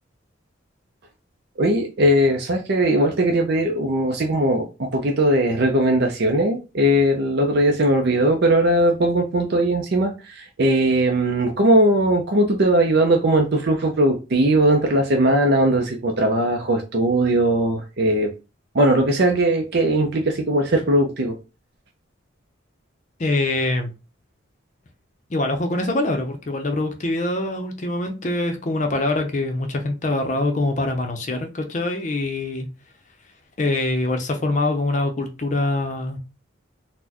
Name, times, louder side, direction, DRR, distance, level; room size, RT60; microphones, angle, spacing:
voice 1, 1.6-18.3 18.7-21.4, right 1 dB, 55° right, 3 dB, 0.5 m, -19 dB
voice 2, 23.2-23.9 25.3-32.7 33.6-36.2, left 2 dB, 40° left, 5 dB, 0.5 m, -24 dB
4.1 x 2.1 x 2.8 m, 0.29 s
head